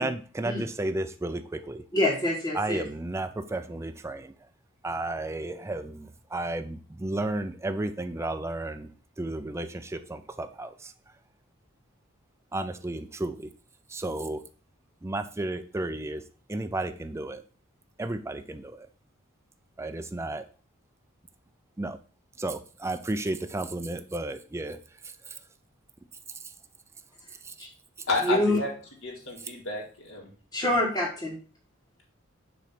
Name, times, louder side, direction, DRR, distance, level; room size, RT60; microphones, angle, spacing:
voice 1, 0.0-1.8 2.5-4.3 4.8-8.9 9.2-10.9 12.5-13.5 13.9-14.4 15.0-16.2 16.5-17.4 18.0-18.9 19.8-20.4 21.8-22.0 22.4-24.8, right 2 dB, 15° right, 8 dB, 0.4 m, -33 dB
voice 2, 1.9-2.8 27.6-27.7 28.2-28.6 30.5-31.4, left 1 dB, 15° left, -8 dB, 1.7 m, -26 dB
voice 3, 28.1-28.7 29.0-30.3, left 3 dB, 70° left, -1 dB, 2.2 m, -30 dB
6.8 x 3.2 x 5.8 m, 0.38 s
head